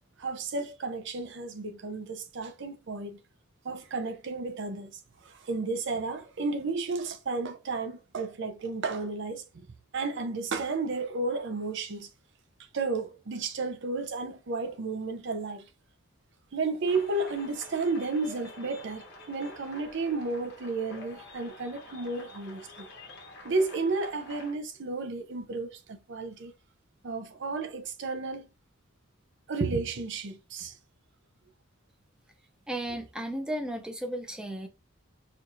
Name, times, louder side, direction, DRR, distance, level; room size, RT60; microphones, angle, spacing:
voice 1, 0.2-3.2 3.6-9.4 9.9-12.1 12.7-15.7 16.5-22.9 23.4-26.5 27.0-28.5 29.5-30.7, right 3 dB, 60° right, 0.5 m, -32 dB
sound 1, 16.9-24.5, left 1 dB, 55° left, 0.9 m, -48 dB
voice 2, 32.7-34.7, right 1 dB, 5° right, 0.5 m, -34 dB
4.4 x 2.5 x 2.6 m
head